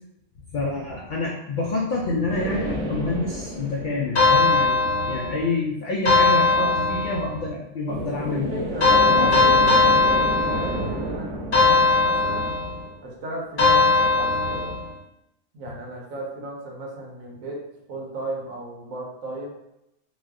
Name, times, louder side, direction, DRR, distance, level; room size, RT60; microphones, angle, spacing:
voice 1, 0.5-4.8 5.1-8.6 9.1-9.7, left 3 dB, 90° left, -3 dB, 0.4 m, -27 dB
sound 1, 2.3-5.1 7.9-13.3, right 1 dB, 45° right, 0.7 m, -32 dB
sound 2, 4.1-5.5 6.0-7.4 8.8-11.0 11.5-12.8 13.6-14.9, left 3 dB, 45° left, 1.0 m, -19 dB
voice 2, 8.3-12.5 13.0-14.7 15.5-19.5, right 2 dB, 80° right, -2 dB, 1.2 m, -35 dB
3.0 x 2.1 x 3.6 m, 0.85 s
omnidirectional pair, 1.4 m